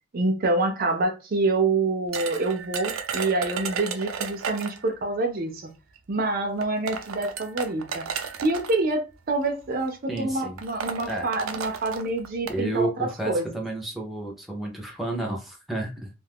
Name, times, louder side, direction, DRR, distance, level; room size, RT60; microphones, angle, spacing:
voice 1, 0.1-5.7 6.1-8.1 8.4-13.6, right 2 dB, 45° right, 0.5 m, -26 dB
sound 1, 2.1-4.9 6.0-6.1 6.6-8.8 9.7-9.9 10.2-10.3 10.6-12.6, right 6 dB, 90° right, 0.5 m, -33 dB
voice 2, 10.1-10.6 11.1-11.3 12.5-16.1, right 2 dB, ahead, 0.6 m, -31 dB
2.5 x 2.3 x 3.4 m
head